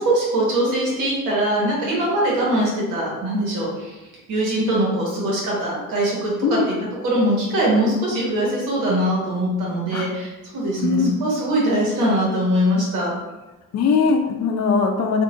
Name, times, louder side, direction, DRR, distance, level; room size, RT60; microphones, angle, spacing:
voice 1, 0.0-3.9 4.3-6.7 7.0-13.1, right 1 dB, 85° right, -5 dB, 1.5 m, -22 dB
voice 2, 10.8-11.2 13.7-15.2, left 5 dB, 60° left, 4 dB, 0.6 m, -20 dB
3.8 x 2.6 x 2.6 m, 1.1 s
cardioid pair, 90°, 30 cm